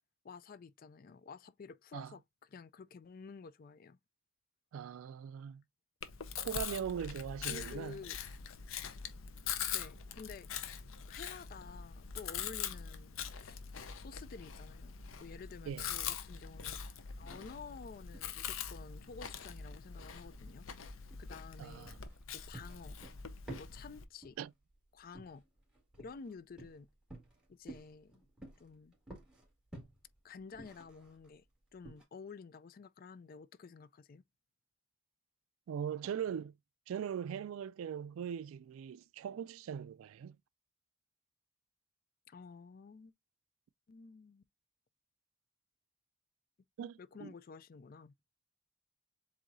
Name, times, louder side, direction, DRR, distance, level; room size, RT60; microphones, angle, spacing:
voice 1, 0.2-2.2 2.5-4.0 7.5-8.2 9.7-10.5 11.1-13.6 14.0-16.8 17.2-20.6 21.2-21.9 22.3-23.0 23.5-24.4 24.9-25.4 26.0-26.9 27.5-28.2 28.6-28.9 30.2-31.4 31.7-34.2 42.3-43.1 43.9-44.4 47.0-48.2, left 5 dB, 45° left, 0.4 m, -51 dB
voice 2, 4.7-5.6 6.4-8.0 15.7-15.9 21.6-22.0 24.4-24.5 35.7-36.5 36.9-40.4 46.8-47.3, right 8 dB, 80° right, 0.3 m, -40 dB
Chewing mastication, 6.0-24.0, left 8 dB, 75° left, 0.7 m, -43 dB
sound 1, 15.0-32.0, right 1 dB, 5° right, 1.9 m, -55 dB
7.6 x 2.7 x 2.6 m
head